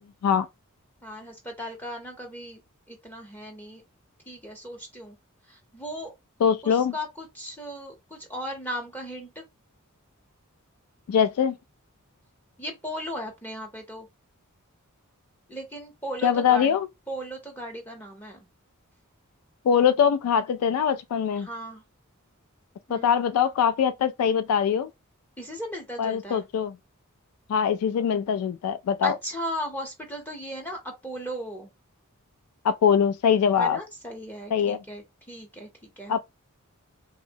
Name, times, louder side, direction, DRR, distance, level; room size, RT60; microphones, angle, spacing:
voice 1, 1.0-2.6 2.9-3.8 4.3-5.2 5.5-6.1 6.6-9.4 12.6-14.1 15.5-16.8 17.1-18.4 21.4-21.8 22.9-23.1 25.4-26.5 29.0-31.7 33.6-35.7 36.0-36.1, equal, 10° left, 0.5 m, -36 dB
voice 2, 6.4-6.9 11.1-11.6 16.2-16.9 19.6-21.5 22.9-24.9 26.0-26.7 27.5-29.1 32.6-33.8 34.5-34.8 36.1-36.2, left 7 dB, 85° left, 0.3 m, -22 dB
2.8 x 2.0 x 2.6 m
head